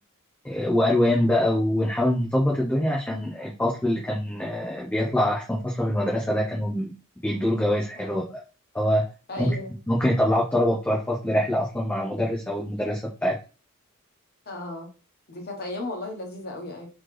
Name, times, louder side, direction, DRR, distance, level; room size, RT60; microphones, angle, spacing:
voice 1, 0.4-6.9 7.2-8.4 8.7-9.1 9.4-9.5 9.9-13.3, left 1 dB, 10° left, -4 dB, 0.7 m, -24 dB
voice 2, 9.3-9.8 14.5-14.9 15.3-16.9, left 2 dB, 50° left, 2 dB, 1.2 m, -35 dB
4.0 x 3.1 x 3.2 m, 0.34 s
head